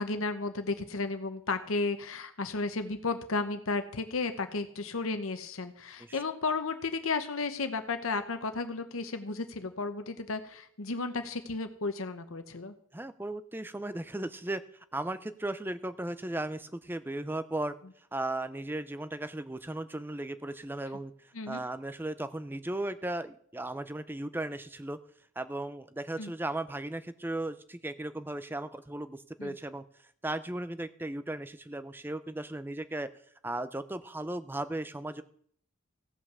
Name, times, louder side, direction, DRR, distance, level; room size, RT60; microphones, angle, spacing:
voice 1, 0.0-12.7 21.3-21.6 26.2-26.3 29.4-29.6, left 3 dB, 75° left, 8 dB, 0.9 m, -33 dB
voice 2, 12.9-17.7 18.1-25.0 25.4-29.8 30.2-33.1 33.4-35.2, right 1 dB, 10° right, 13 dB, 0.5 m, -36 dB
16.5 x 5.6 x 6.8 m, 0.62 s
head